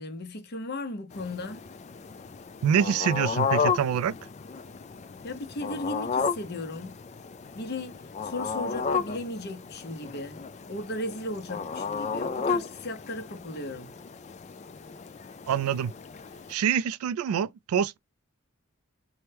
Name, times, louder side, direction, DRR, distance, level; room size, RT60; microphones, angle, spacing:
voice 1, 0.0-1.6 5.2-7.0 7.5-10.4 10.7-13.9, left 1 dB, 50° left, 0.7 m, -36 dB
sound 1, 1.1-16.5, left 5 dB, 30° left, 0.3 m, -33 dB
voice 2, 2.6-4.1 15.5-15.9 16.5-18.0, right 8 dB, 90° right, 0.3 m, -25 dB
4.4 x 2.1 x 3.3 m
head